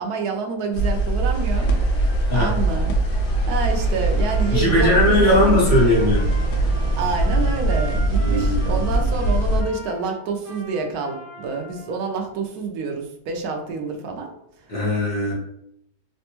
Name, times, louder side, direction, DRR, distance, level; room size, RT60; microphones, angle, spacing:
voice 1, 0.0-1.7 2.0-5.6 7.0-14.3, right 4 dB, 75° right, 2 dB, 1.1 m, -28 dB
sound 1, 0.7-9.6, right 2 dB, 80° left, 1.2 m, -21 dB
sound 2, 1.3-7.3, equal, 50° left, 1.2 m, -40 dB
Trumpet, 4.2-11.9, right 1 dB, 25° right, 0.4 m, -40 dB
voice 2, 4.5-6.3 8.2-8.8 14.7-15.3, left 1 dB, 35° left, -7 dB, 1.0 m, -19 dB
3.3 x 2.2 x 2.9 m, 0.74 s
omnidirectional pair, 1.7 m